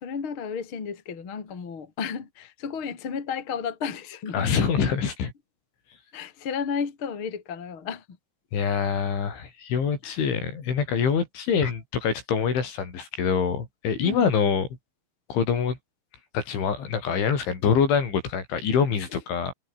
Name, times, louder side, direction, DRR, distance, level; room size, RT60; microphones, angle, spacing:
voice 1, 0.0-4.7 6.1-8.0 10.0-10.2 14.0-14.2, left 6 dB, 30° left, 3.2 m, -33 dB
voice 2, 4.3-5.3 8.5-14.7 15.3-15.8 16.3-19.5, left 6 dB, 75° left, 7.3 m, -25 dB
omnidirectional pair, 5.5 m